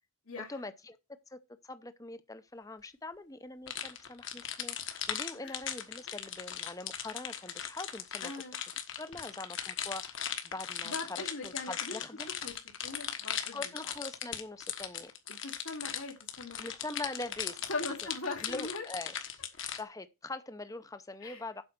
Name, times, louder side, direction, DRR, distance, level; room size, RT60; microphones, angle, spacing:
voice 1, 0.4-1.0 1.3-8.3 9.0-12.3 13.5-15.1 16.6-17.7 18.4-19.1 19.7-21.6, left 2 dB, 15° left, 0.6 m, -43 dB
sound 1, 3.7-19.8, left 9 dB, 55° left, 1.4 m, -38 dB
voice 2, 8.2-8.6 10.8-12.0 12.3-12.6 12.8-13.6 15.3-16.6 17.7-18.8 21.2-21.4, left 3 dB, 80° left, 2.4 m, -40 dB
7.9 x 5.5 x 6.5 m
head